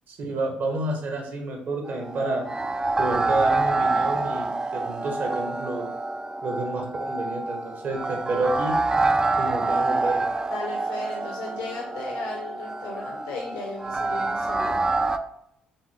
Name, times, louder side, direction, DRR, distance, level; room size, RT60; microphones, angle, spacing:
voice 1, 0.1-2.4 3.0-5.9 6.4-8.8 9.4-10.2, right 2 dB, 50° right, 2 dB, 1.1 m, -29 dB
sound 1, 1.9-15.2, right 3 dB, 20° right, 0.4 m, -27 dB
voice 2, 10.5-14.8, left 3 dB, 70° left, -1 dB, 0.8 m, -36 dB
4.6 x 3.5 x 3.2 m, 0.76 s
figure-of-eight pair, 45°, 4 cm